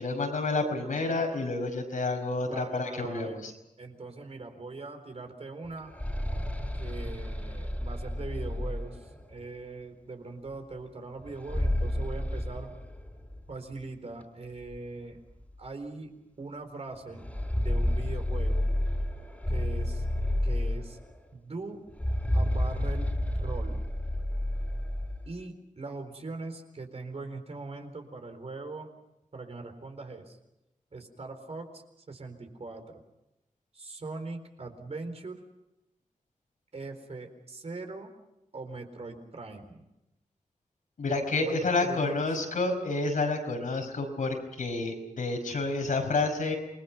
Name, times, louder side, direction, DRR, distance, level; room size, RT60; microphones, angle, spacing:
voice 1, 0.0-3.5 41.0-46.6, left 3 dB, 80° left, 3 dB, 5.4 m, -29 dB
voice 2, 2.4-3.5 3.8-5.9 6.7-12.7 13.5-15.2 15.6-16.1 16.4-17.2 17.5-18.7 19.5-20.0 20.4-21.0 21.3-21.8 22.3-23.8 25.3-28.9 29.3-30.4 30.9-33.0 33.7-35.4 36.7-38.1 38.5-39.8 41.4-42.3, right 3 dB, 50° right, 5 dB, 4.1 m, -41 dB
sound 1, 5.6-9.4 11.2-13.4 13.7-13.8 14.7-14.8 15.3-15.4 17.1-21.2 21.9-25.3, left 1 dB, 10° left, 4.1 m, -30 dB
28.0 x 21.5 x 5.9 m, 0.90 s
wide cardioid pair, 90°, 13 cm